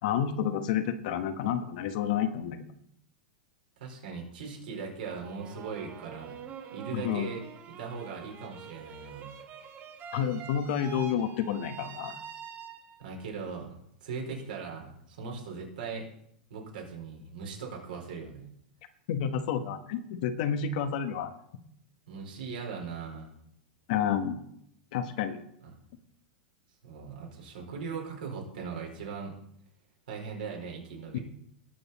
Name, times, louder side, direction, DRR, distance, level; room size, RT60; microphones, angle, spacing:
voice 1, 0.0-2.7 6.9-7.3 10.1-12.1 19.1-21.3 23.9-24.3 24.9-25.4 31.1-31.2, left 8 dB, 60° left, 8 dB, 1.2 m, -30 dB
voice 2, 3.8-6.4 6.7-7.4 7.8-9.3 13.0-16.1 16.5-18.5 22.1-23.3 25.6-25.8 26.8-29.3 30.1-31.2, right 5 dB, 70° right, 0 dB, 4.4 m, -39 dB
sound 1, 5.0-13.2, right 7 dB, 35° right, 1.5 m, -46 dB
18.5 x 6.9 x 4.1 m, 0.74 s
hypercardioid pair, 105°, 5 cm